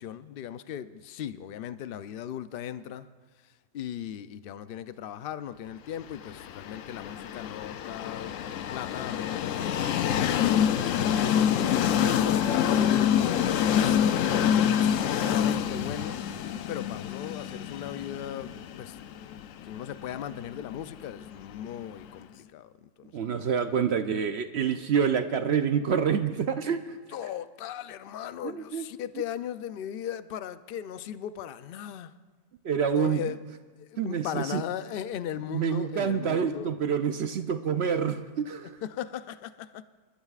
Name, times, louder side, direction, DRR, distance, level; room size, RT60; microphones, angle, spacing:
voice 1, 0.0-3.1 3.7-9.9 10.4-14.2 14.7-16.2 16.7-19.1 19.6-23.8 27.1-32.1 33.0-33.4 33.8-36.7 38.8-39.8, left 10 dB, 85° left, 0.5 m, -38 dB
Train, 6.2-22.0, left 9 dB, 70° left, 0.9 m, -27 dB
voice 2, 23.1-27.0 28.4-28.9 32.6-33.2 34.0-34.6 35.5-38.8, right 7 dB, 60° right, 0.7 m, -27 dB
28.0 x 13.0 x 2.4 m
omnidirectional pair, 1.5 m